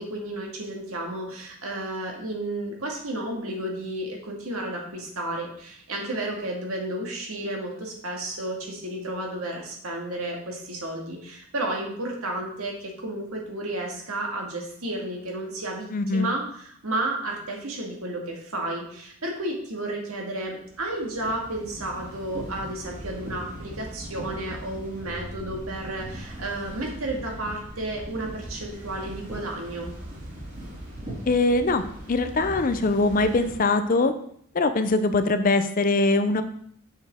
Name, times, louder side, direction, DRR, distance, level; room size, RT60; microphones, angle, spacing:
voice 1, 0.0-29.9, right 1 dB, 80° right, 0 dB, 1.9 m, -32 dB
voice 2, 15.9-16.3 31.3-31.8 32.1-34.1 34.5-36.4, left 3 dB, 40° left, 10 dB, 0.5 m, -22 dB
sound 1, 20.5-33.6, right 1 dB, 35° right, 2.3 m, -39 dB
7.2 x 6.2 x 3.6 m, 0.64 s
head